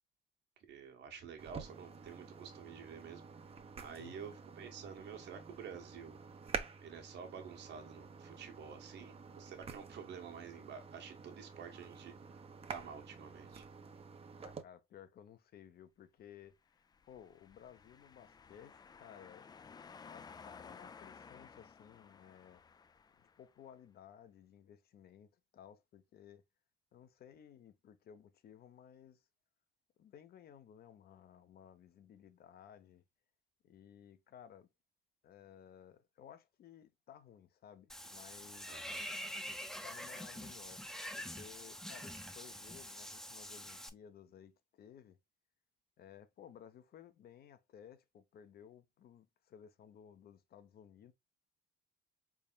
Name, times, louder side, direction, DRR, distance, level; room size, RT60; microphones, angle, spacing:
voice 1, 0.7-3.2 3.8-6.2 6.8-12.1 12.7-13.7 38.7-39.0, right 7 dB, 65° right, 1.4 m, -50 dB
sound 1, 1.4-14.6, right 5 dB, 30° right, 0.7 m, -49 dB
voice 2, 4.0-4.4 14.4-19.5 20.0-22.6 23.2-26.4 26.9-29.2 30.0-33.0 33.6-34.7 35.2-38.8 39.8-40.8 41.1-45.2 46.0-51.1, left 9 dB, 55° left, 0.9 m, -57 dB
sound 2, 16.8-23.6, left 5 dB, 20° left, 0.3 m, -56 dB
Water / Bathtub (filling or washing), 37.9-43.9, equal, 5° left, 0.7 m, -45 dB
4.2 x 3.6 x 2.3 m
cardioid pair, 110°, 19 cm